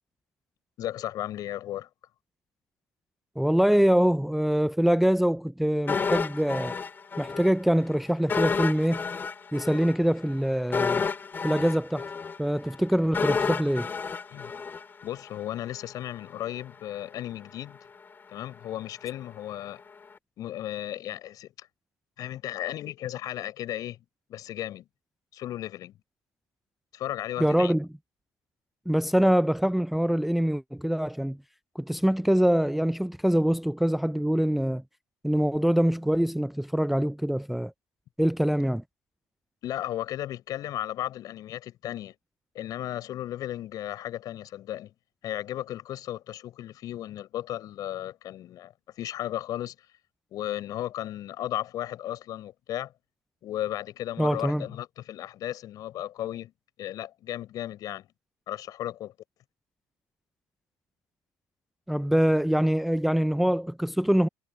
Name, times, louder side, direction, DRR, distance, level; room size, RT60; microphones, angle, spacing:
voice 1, 0.8-1.9 14.3-14.5 15.0-17.8 18.3-19.8 20.4-21.7 22.2-24.0 24.3-24.9 25.3-25.9 26.9-27.7 39.6-42.1 42.5-44.9 45.2-48.7 49.0-49.7 50.3-52.9 53.4-56.5 56.8-58.1 58.5-59.1, left 12 dB, 55° left, 6.2 m, -35 dB
voice 2, 3.4-6.8 7.2-9.0 9.5-11.0 11.4-12.1 12.4-13.9 27.4-27.9 28.9-31.4 31.8-34.8 35.2-37.7 38.2-38.8 54.2-54.7 61.9-64.3, equal, ahead, 0.4 m, -24 dB
sound 1, 5.9-7.5 7.8-7.9 8.3-15.4 15.7-15.8, left 5 dB, 30° left, 2.8 m, -30 dB
supercardioid pair, 95°, 7 cm